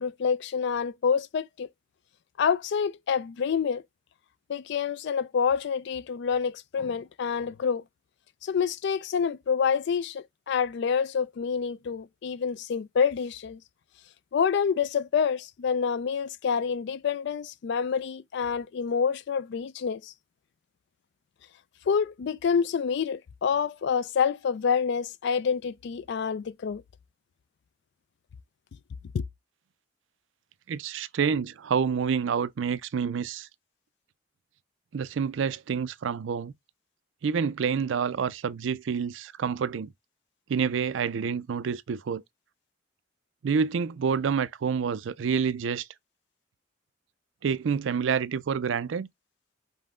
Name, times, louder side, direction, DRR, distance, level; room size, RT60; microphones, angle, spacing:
voice 1, 0.0-1.7 2.4-3.8 4.5-7.8 8.4-13.6 14.3-20.1 21.9-26.8 29.1-29.2, left 6 dB, 60° left, 0.3 m, -27 dB
voice 2, 30.7-33.5 34.9-36.5 37.2-39.9 40.5-42.2 43.4-45.9 47.4-49.1, right 6 dB, 75° right, 0.4 m, -28 dB
5.5 x 2.1 x 3.6 m
head